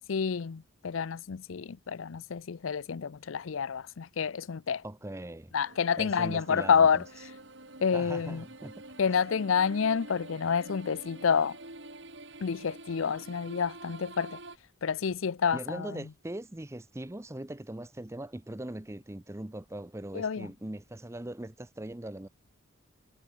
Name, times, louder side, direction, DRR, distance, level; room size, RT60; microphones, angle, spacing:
voice 1, 0.1-4.8 5.5-7.0 7.8-8.4 9.0-11.6 12.4-14.4 14.8-15.9 20.1-20.5, left 6 dB, 85° left, 0.5 m, -28 dB
voice 2, 4.8-5.5 6.0-7.0 7.9-8.7 9.1-9.2 15.5-22.3, right 1 dB, 15° right, 0.6 m, -40 dB
sound 1, 5.6-14.6, right 2 dB, 60° right, 6.2 m, -48 dB
head